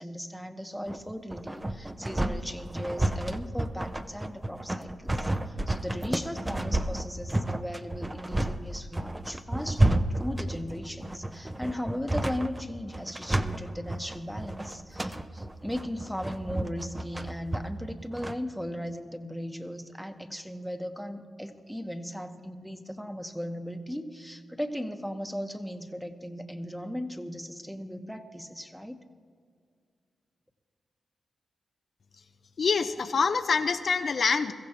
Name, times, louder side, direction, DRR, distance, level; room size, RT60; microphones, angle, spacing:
voice 1, 0.0-29.0, equal, ahead, 6 dB, 1.1 m, -37 dB
sound 1, 0.9-18.4, right 1 dB, 15° right, 0.7 m, -30 dB
voice 2, 32.6-34.5, left 5 dB, 65° left, 7 dB, 0.6 m, -25 dB
22.0 x 15.0 x 2.9 m, 2.1 s
cardioid pair, 60°, 0 cm